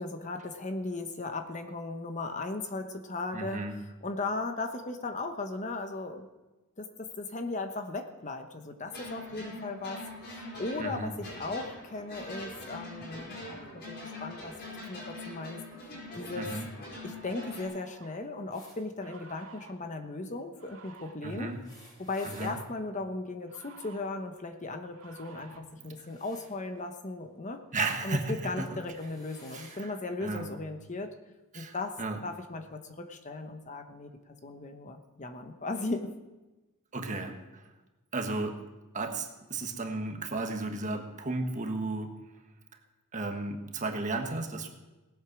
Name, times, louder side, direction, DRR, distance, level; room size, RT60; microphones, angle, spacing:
voice 1, 0.0-3.6 4.0-6.3 6.8-10.0 10.3-14.5 14.9-15.6 16.1-16.5 17.0-21.6 22.0-27.6 28.0-31.1 31.5-32.0 32.2-36.1, left 2 dB, 35° left, 6 dB, 1.0 m, -37 dB
voice 2, 3.3-3.8 10.8-11.2 16.4-16.7 21.2-21.6 22.2-22.6 25.3-25.4 25.8-26.1 27.7-28.8 29.5-29.9 30.2-30.5 31.5-32.2 36.9-37.7 38.1-38.6 38.9-42.1 43.1-44.7, right 2 dB, 35° right, 3 dB, 1.4 m, -34 dB
sound 1, 8.9-17.6, left 1 dB, 50° left, 4.8 m, -43 dB
sound 2, 16.1-16.2 17.0-18.2 19.0-19.7 20.5-21.2 22.1-22.6 23.5-24.1 24.9-25.6, right 4 dB, 70° right, 1.9 m, -53 dB
sound 3, 18.5-18.8 21.4-22.6 25.8-26.5 27.9-28.1 28.7-29.8 30.9-31.0 32.2-32.3, left 1 dB, 15° left, 3.8 m, -55 dB
18.0 x 8.1 x 6.1 m, 1.1 s
head